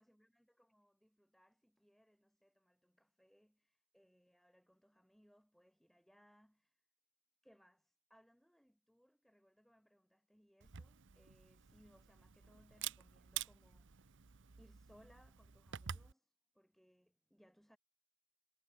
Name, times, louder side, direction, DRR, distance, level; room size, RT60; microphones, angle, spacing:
voice 1, 0.0-6.8 7.4-17.8, equal, ahead, 6.1 m, -70 dB
Camera, 10.6-16.1, right 10 dB, 60° right, 0.9 m, -49 dB
head